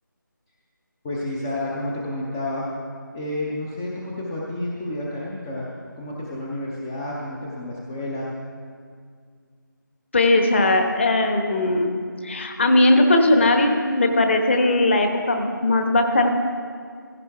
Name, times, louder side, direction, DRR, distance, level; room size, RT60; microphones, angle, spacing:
voice 1, 1.0-2.6 3.1-5.7 6.0-8.3, left 1 dB, 10° left, -4 dB, 0.5 m, -30 dB
voice 2, 10.1-11.9 12.2-16.3, left 2 dB, 35° left, 5 dB, 1.1 m, -19 dB
15.5 x 15.5 x 3.4 m, 2.1 s
figure-of-eight pair, 165°, 11 cm